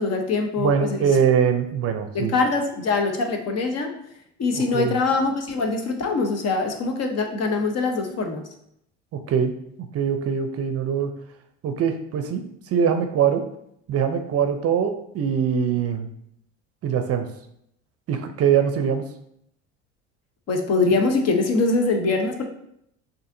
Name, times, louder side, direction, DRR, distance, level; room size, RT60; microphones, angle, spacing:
voice 1, 0.0-1.1 2.1-3.9 4.4-8.4 20.5-22.4, left 3 dB, 45° left, 4 dB, 0.9 m, -23 dB
voice 2, 0.6-2.3 4.5-5.0 9.1-11.1 11.6-13.4 13.9-16.1 16.8-17.3 18.1-19.0, right 7 dB, 40° right, 7 dB, 0.6 m, -23 dB
6.1 x 2.8 x 2.6 m, 0.74 s
hypercardioid pair, 70°, 36 cm